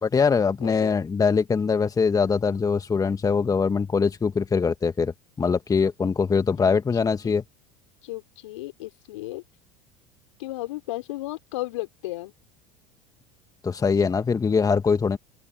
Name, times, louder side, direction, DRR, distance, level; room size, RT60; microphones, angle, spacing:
voice 1, 0.0-7.4 13.6-15.2, left 5 dB, 20° left, 1.8 m, -22 dB
voice 2, 0.6-1.0 6.6-6.8 7.2-7.4 8.0-9.4 10.4-12.3, left 18 dB, 70° left, 4.7 m, -34 dB
figure-of-eight pair, 75°, 17 cm